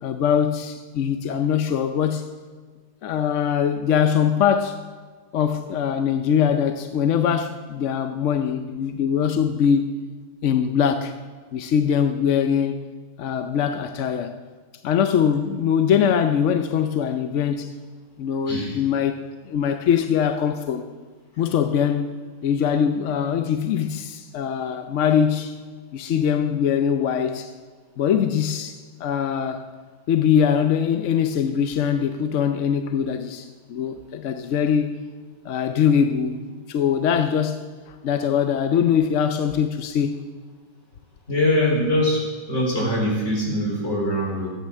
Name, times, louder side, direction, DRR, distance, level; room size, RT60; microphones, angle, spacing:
voice 1, 0.0-2.3 3.0-4.8 5.3-9.9 10.4-11.1 11.5-12.8 13.2-14.4 14.8-17.7 18.2-20.9 21.4-22.2 22.4-25.6 25.9-27.5 28.0-29.6 30.1-35.0 35.4-37.6 37.9-40.2, left 8 dB, 60° left, 0.8 m, -22 dB
voice 2, 18.5-18.8 41.3-44.5, left 1 dB, 40° left, 4.3 m, -23 dB
14.5 x 8.9 x 7.7 m
omnidirectional pair, 1.8 m